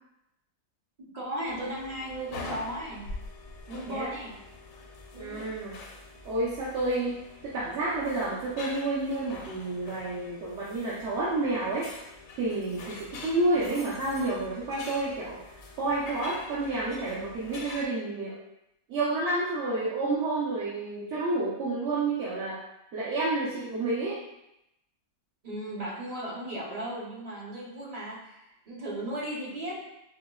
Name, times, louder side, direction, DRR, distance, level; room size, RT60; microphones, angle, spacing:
voice 1, 1.0-3.0 3.7-4.3 5.1-5.4 25.4-29.8, right 1 dB, 40° right, -5 dB, 0.6 m, -36 dB
sound 1, 1.4-17.9, left 3 dB, 75° left, 1.0 m, -45 dB
voice 2, 5.2-5.8 6.2-11.9 12.4-15.4 15.8-18.4 18.9-22.6 22.9-24.2, right 2 dB, 60° right, -8 dB, 0.9 m, -30 dB
5.0 x 2.0 x 2.3 m, 0.86 s
omnidirectional pair, 1.6 m